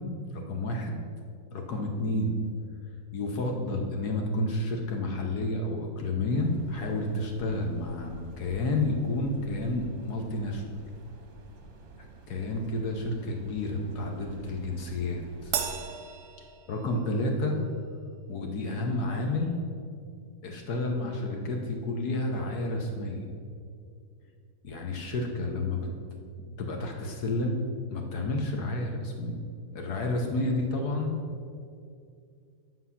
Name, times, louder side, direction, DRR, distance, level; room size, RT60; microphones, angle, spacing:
voice 1, 0.3-0.9 1.5-2.4 3.1-10.8 12.3-15.6 16.7-17.6 18.3-19.6 20.4-23.3 24.6-25.9 26.6-27.6 27.9-29.4 29.7-31.1, left 2 dB, 60° left, 2 dB, 1.3 m, -30 dB
sound 1, 6.3-15.7, right 3 dB, 45° right, 1.1 m, -50 dB
Crash cymbal, 15.5-17.2, right 7 dB, 60° right, 1.1 m, -34 dB
9.5 x 5.9 x 5.7 m, 2.3 s
omnidirectional pair, 2.1 m